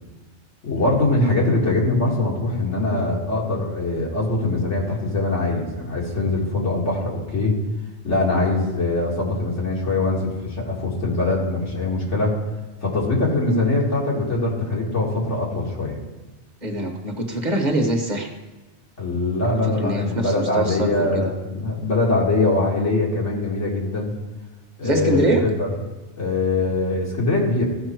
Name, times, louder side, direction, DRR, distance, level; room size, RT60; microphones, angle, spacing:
voice 1, 0.6-7.6 8.0-12.3 12.8-16.0 19.0-24.1 24.8-25.7 26.2-27.7, left 2 dB, 85° left, -3 dB, 2.5 m, -22 dB
voice 2, 16.6-18.3 19.7-21.2 24.8-25.4, right 2 dB, 40° right, 3 dB, 1.1 m, -23 dB
14.0 x 5.5 x 4.5 m, 1.2 s
omnidirectional pair, 1.2 m